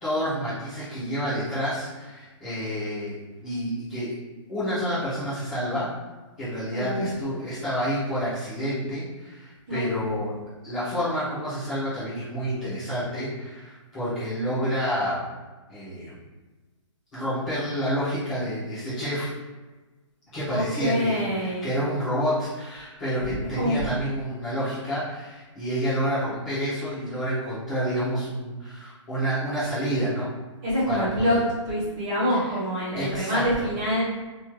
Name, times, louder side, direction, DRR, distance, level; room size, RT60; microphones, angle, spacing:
voice 1, 0.0-3.2 3.4-4.1 4.5-5.9 6.4-10.3 10.6-15.1 15.7-16.1 17.1-19.3 20.3-30.3 30.9-31.4 33.0-33.6, equal, 5° left, -19 dB, 0.3 m, -29 dB
voice 2, 6.7-7.1 9.7-9.9 20.5-21.7 23.3-23.8 30.6-31.4 31.6-34.0, equal, 15° right, -11 dB, 1.3 m, -26 dB
3.5 x 2.9 x 2.8 m, 1.2 s
hypercardioid pair, 175°, 16 cm